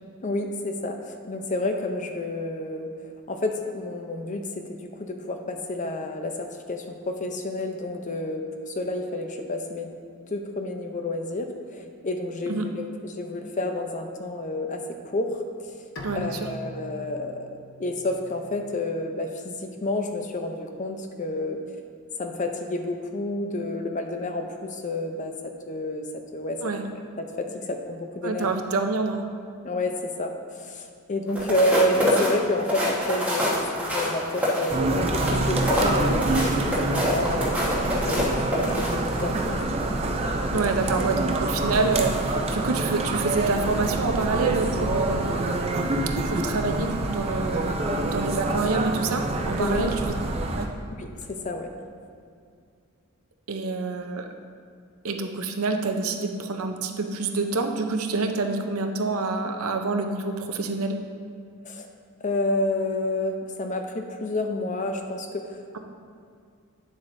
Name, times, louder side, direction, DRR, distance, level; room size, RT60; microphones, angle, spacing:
voice 1, 0.2-9.9 10.3-11.5 11.7-17.5 17.8-21.8 22.2-25.3 25.7-26.1 26.3-26.6 27.2-28.5 29.6-37.8 38.0-39.7 49.6-49.8 51.0-51.7 61.6-61.9 62.2-65.6, left 1 dB, 35° left, 5 dB, 0.6 m, -30 dB
Bowed string instrument, 16.0-19.2, equal, 60° left, 0.8 m, -42 dB
voice 2, 16.0-16.4 26.6-26.8 28.2-29.2 40.5-45.5 46.2-50.1 50.6-50.7 53.5-54.3 55.0-61.0, right 3 dB, 70° right, 5 dB, 0.6 m, -27 dB
sound 1, 31.3-39.5 39.9-40.1, left 1 dB, 5° right, 1.3 m, -26 dB
sound 2, 34.7-50.7, right 2 dB, 25° right, 0.5 m, -26 dB
9.8 x 7.3 x 2.6 m, 2.3 s
head